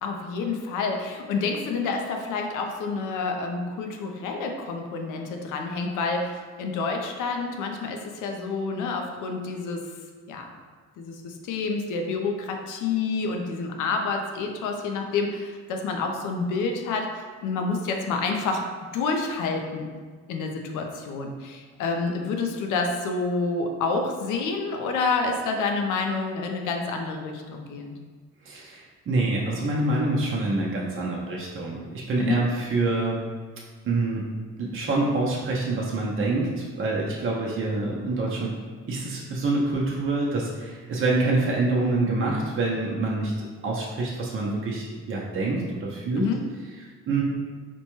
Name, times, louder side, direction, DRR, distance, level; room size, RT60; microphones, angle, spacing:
voice 1, 0.0-9.8 10.3-10.5 11.0-19.9 20.3-27.9 32.2-32.4 46.2-46.4, left 4 dB, 85° left, 3 dB, 0.5 m, -28 dB
voice 2, 28.4-33.2 33.8-34.2 34.6-38.5 38.9-43.3 43.6-46.3 46.8-47.2, right 2 dB, 45° right, -4 dB, 0.6 m, -26 dB
4.3 x 2.2 x 3.0 m, 1.5 s
cardioid pair, 90°, 30 cm